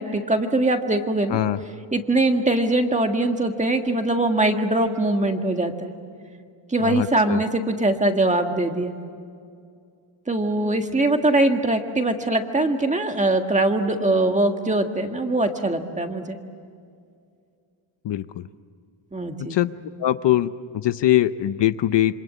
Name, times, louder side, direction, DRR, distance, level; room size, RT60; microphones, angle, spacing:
voice 1, 0.0-1.4 1.9-5.9 6.7-8.9 10.3-16.4 19.1-19.6, right 2 dB, 15° right, 5 dB, 1.6 m, -22 dB
voice 2, 6.8-7.4 18.0-18.5 19.5-19.7 20.0-22.1, left 13 dB, 60° left, 12 dB, 0.7 m, -22 dB
27.5 x 25.5 x 8.4 m, 2.3 s
wide cardioid pair, 155°, 48 cm